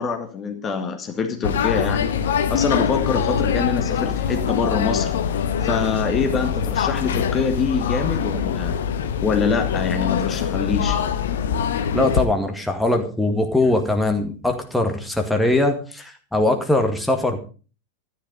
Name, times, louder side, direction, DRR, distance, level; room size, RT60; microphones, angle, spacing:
voice 1, 0.0-2.1 2.5-5.1 5.6-8.8 9.2-11.0, left 5 dB, 25° left, 6 dB, 1.9 m, -25 dB
sound 1, 1.4-12.3, left 7 dB, 60° left, 1.4 m, -23 dB
voice 2, 11.9-17.4, left 2 dB, 5° left, 3 dB, 2.0 m, -21 dB
13.0 x 11.0 x 5.3 m, 0.37 s
figure-of-eight pair, 90°, 0 cm